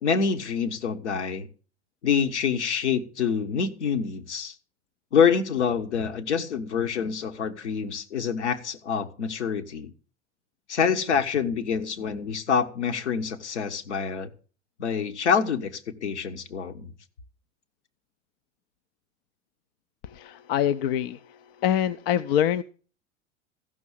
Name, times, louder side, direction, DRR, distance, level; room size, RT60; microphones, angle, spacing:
voice 1, 0.0-1.5 2.0-4.5 5.1-9.9 10.7-14.3 14.8-16.9, left 6 dB, 75° left, 7 dB, 1.5 m, -26 dB
voice 2, 20.0-22.6, left 10 dB, 55° left, 12 dB, 0.6 m, -25 dB
14.5 x 6.3 x 7.1 m, 0.39 s
figure-of-eight pair, 80°, 35 cm